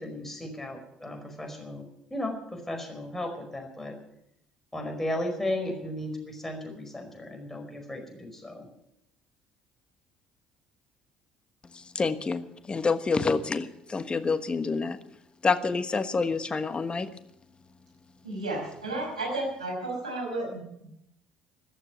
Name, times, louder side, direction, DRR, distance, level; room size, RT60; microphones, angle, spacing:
voice 1, 0.0-4.0 4.7-8.7, left 1 dB, 10° left, 3 dB, 5.0 m, -35 dB
voice 2, 11.7-15.0 15.4-17.1, left 4 dB, 25° left, 12 dB, 1.3 m, -28 dB
voice 3, 18.2-20.9, right 2 dB, 90° right, -1 dB, 5.4 m, -33 dB
14.5 x 13.0 x 7.3 m, 0.78 s
figure-of-eight pair, 55°, 4 cm